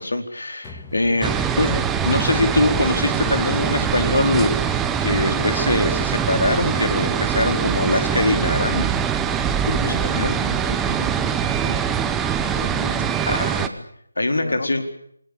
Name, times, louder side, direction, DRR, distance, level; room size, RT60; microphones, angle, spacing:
voice 1, 0.0-8.9 9.6-10.4 13.3-13.7 14.2-14.8, left 2 dB, 80° left, 6 dB, 4.6 m, -23 dB
sound 1, 0.6-12.5, left 4 dB, 15° left, 2.3 m, -40 dB
sound 2, 1.2-13.7, right 8 dB, 5° right, 1.0 m, -23 dB
voice 2, 9.8-12.0 12.4-13.9 14.3-14.9, left 3 dB, 65° left, 7 dB, 2.6 m, -35 dB
28.0 x 20.0 x 6.9 m, 0.69 s
figure-of-eight pair, 165°, 0 cm